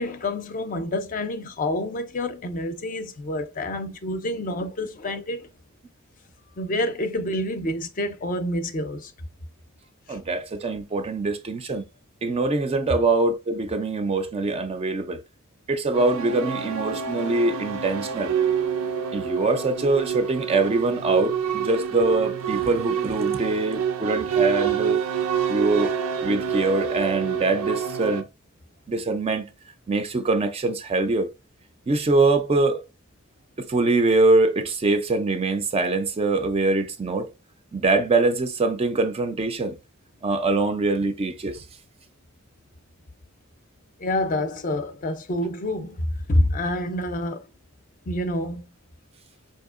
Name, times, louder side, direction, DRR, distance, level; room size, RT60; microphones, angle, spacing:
voice 1, 0.0-5.5 6.6-9.1 44.0-47.4 48.1-48.6, left 1 dB, 40° left, 0.5 m, -27 dB
voice 2, 10.1-11.8 12.2-15.2 15.7-18.3 19.1-25.0 25.5-25.9 26.2-28.2 28.9-29.5 29.9-31.3 31.9-32.8 33.6-37.3 37.7-39.8 40.2-41.6, right 3 dB, 30° right, 0.4 m, -23 dB
sound 1, 15.9-28.2, right 8 dB, 90° right, 0.5 m, -27 dB
4.4 x 2.7 x 2.4 m
head